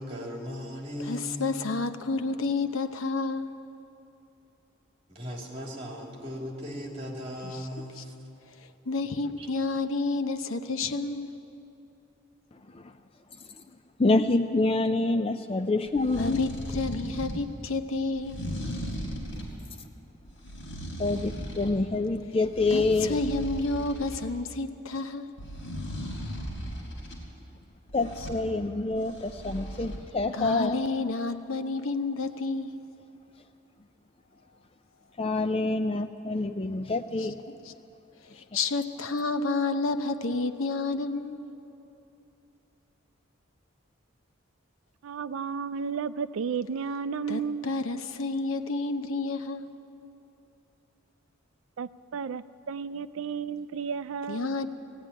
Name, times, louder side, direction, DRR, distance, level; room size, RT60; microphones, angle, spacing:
voice 1, 0.0-1.6 5.1-8.1 9.0-9.5, equal, 30° right, -1 dB, 3.1 m, -38 dB
voice 2, 1.0-3.5 7.4-7.6 8.0-8.1 8.9-11.3 16.2-18.4 22.7-25.3 30.3-32.8 37.2-37.3 37.7-37.8 38.3-41.4 47.3-49.7 54.3-54.7, left 3 dB, 80° left, 9 dB, 0.9 m, -30 dB
voice 3, 14.0-16.5 21.0-23.2 27.9-30.8 35.2-37.4, left 2 dB, 25° left, 8 dB, 0.4 m, -26 dB
sound 1, 15.9-17.4 18.1-19.6 20.2-21.8 22.2-24.2 25.4-27.2 27.9-28.4 28.9-30.0, equal, 65° left, 4.5 m, -37 dB
voice 4, 45.0-47.7 51.8-54.5, right 6 dB, 75° right, 15 dB, 0.4 m, -33 dB
17.5 x 14.5 x 10.0 m, 2.9 s
head